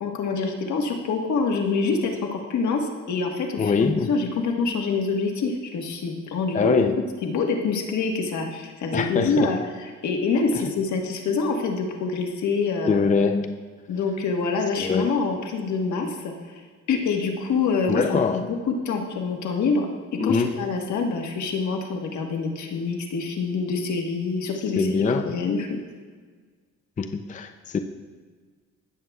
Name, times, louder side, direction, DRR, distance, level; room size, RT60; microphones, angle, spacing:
voice 1, 0.0-6.7 7.2-13.0 13.9-16.3 16.9-24.9 25.2-25.8, left 4 dB, 70° left, 2 dB, 1.4 m, -26 dB
voice 2, 3.6-4.1 6.5-7.0 8.9-9.5 12.9-13.6 14.8-15.1 17.9-18.5 20.2-20.5 24.8-25.3 27.0-27.8, left 5 dB, 25° left, 7 dB, 0.5 m, -23 dB
17.0 x 7.7 x 2.3 m, 1.5 s
cardioid pair, 90°, 30 cm